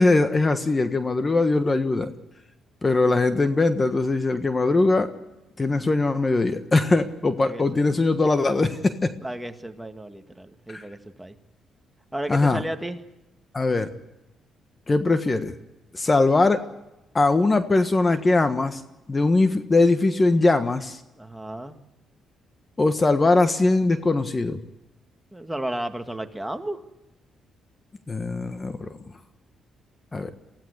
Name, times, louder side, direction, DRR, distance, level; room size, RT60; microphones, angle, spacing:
voice 1, 0.0-2.1 2.8-5.1 5.6-9.1 10.7-10.8 12.3-12.6 13.5-13.9 14.9-15.5 15.9-16.6 17.1-18.8 19.1-21.0 22.8-24.6 28.1-28.9 30.1-30.3, left 3 dB, 25° left, 9 dB, 1.4 m, -21 dB
voice 2, 9.2-11.3 12.1-13.0 21.2-21.8 25.3-26.8, right 1 dB, 5° right, 6 dB, 1.8 m, -33 dB
23.5 x 16.0 x 8.0 m, 0.96 s
cardioid pair, 90°, 0 cm